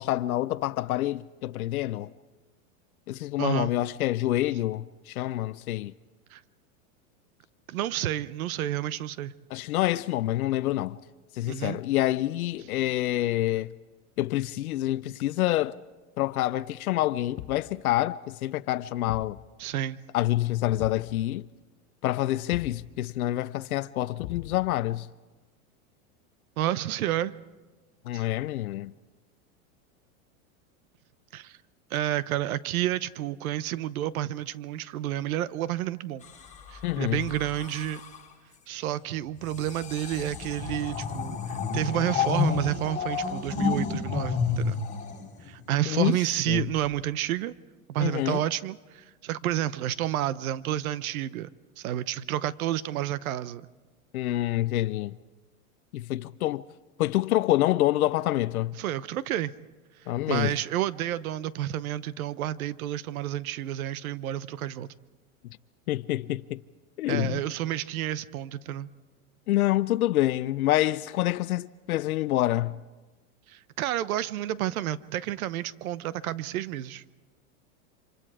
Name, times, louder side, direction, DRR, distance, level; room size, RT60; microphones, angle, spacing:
voice 1, 0.0-2.1 3.1-5.9 9.5-11.0 11.3-13.7 14.2-15.8 16.2-19.4 20.1-21.5 22.0-25.1 28.1-28.9 36.8-37.2 45.9-46.2 46.5-46.6 48.0-48.4 54.1-55.2 55.9-56.6 57.0-58.8 60.1-60.5 65.9-66.6 67.0-67.4 69.5-72.8, left 15 dB, 85° left, 0.6 m, -27 dB
voice 2, 3.4-3.7 6.3-6.4 7.7-9.3 11.5-11.8 19.6-20.0 26.6-27.3 28.1-28.2 31.3-31.6 31.9-36.3 36.7-38.0 38.7-44.8 45.4-47.5 47.9-51.5 51.8-53.7 58.8-59.5 60.0-64.9 67.1-68.9 73.5-77.0, right 12 dB, 75° right, 0.9 m, -30 dB
Thump thud, 17.4-17.8 19.1-19.4 20.8-21.1 22.5-22.9 24.2-24.8, left 15 dB, 50° left, 0.9 m, -40 dB
sound 1, 36.2-38.3 39.4-45.8 46.7-47.0, left 6 dB, 15° left, 6.3 m, -31 dB
28.5 x 25.5 x 4.9 m
hypercardioid pair, 120°, 43 cm